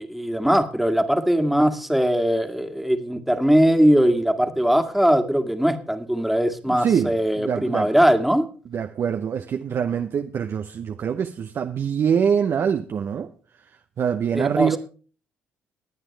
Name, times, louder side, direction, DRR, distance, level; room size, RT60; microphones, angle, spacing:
voice 1, 0.0-8.5 14.4-14.8, equal, ahead, 2.0 m, -20 dB
voice 2, 6.7-7.9 8.7-13.3 14.0-14.8, right 7 dB, 50° right, 0.8 m, -24 dB
21.5 x 8.9 x 3.3 m
hypercardioid pair, 50°, 5 cm